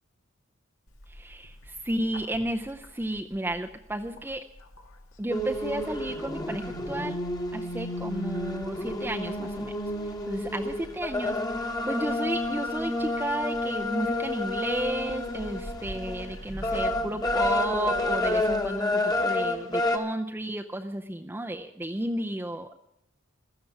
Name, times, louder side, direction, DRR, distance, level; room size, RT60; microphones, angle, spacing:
Bird, 0.9-18.8, left 1 dB, 85° left, 2.0 m, -47 dB
voice 1, 1.1-4.4 5.2-7.2 7.5-9.7 10.0-22.7, right 1 dB, 10° right, 4 dB, 0.5 m, -33 dB
sound 1, 5.3-20.0, left 2 dB, 20° left, 1.2 m, -30 dB
16.0 x 12.5 x 6.0 m, 0.78 s
head